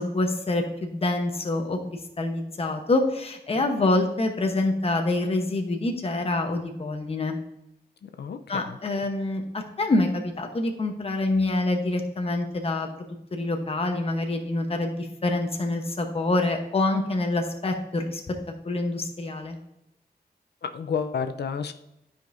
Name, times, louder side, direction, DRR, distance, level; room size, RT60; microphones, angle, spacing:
voice 1, 0.0-1.8 2.2-7.4 8.5-12.9 13.3-18.3 18.6-19.6, left 2 dB, 35° left, 3 dB, 0.9 m, -26 dB
voice 2, 3.6-4.1 8.0-8.8 20.6-21.7, left 6 dB, 85° left, 9 dB, 0.5 m, -32 dB
12.0 x 5.2 x 2.6 m, 0.84 s
wide cardioid pair, 150°, 17 cm